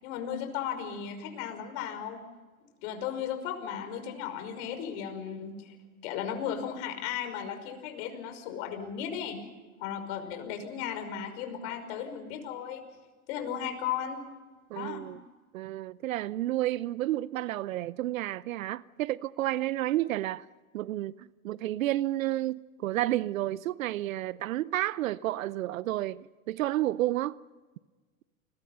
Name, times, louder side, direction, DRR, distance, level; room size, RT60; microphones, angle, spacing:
voice 1, 0.0-2.2 2.8-5.8 6.0-9.4 9.8-12.8 13.3-14.2 14.7-15.0, left 8 dB, 55° left, 5.7 m, -35 dB
voice 2, 14.7-15.2 15.5-20.5 20.7-27.4, right 15 dB, 70° right, 0.7 m, -31 dB
30.0 x 21.5 x 5.6 m
hypercardioid pair, 105°, 42 cm